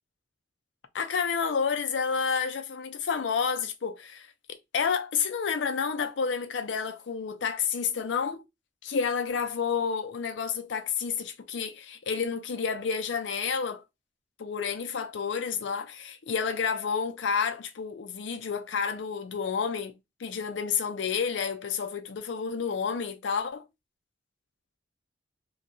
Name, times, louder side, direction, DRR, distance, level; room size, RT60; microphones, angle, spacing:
voice 1, 0.9-8.4 8.8-13.8 14.4-19.9 20.2-23.6, left 6 dB, 75° left, 0.5 m, -30 dB
2.8 x 2.2 x 2.6 m
head